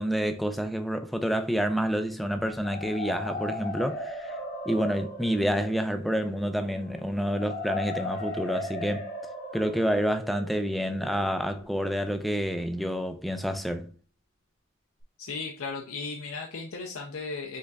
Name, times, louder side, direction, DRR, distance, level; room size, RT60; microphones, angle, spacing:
voice 1, 0.0-4.3 4.7-9.1 9.5-13.9, equal, ahead, 0.4 m, -28 dB
sound 1, 2.4-12.3, left 1 dB, 45° left, 0.9 m, -38 dB
voice 2, 15.2-17.6, left 4 dB, 70° left, 0.6 m, -36 dB
5.2 x 3.8 x 2.3 m
head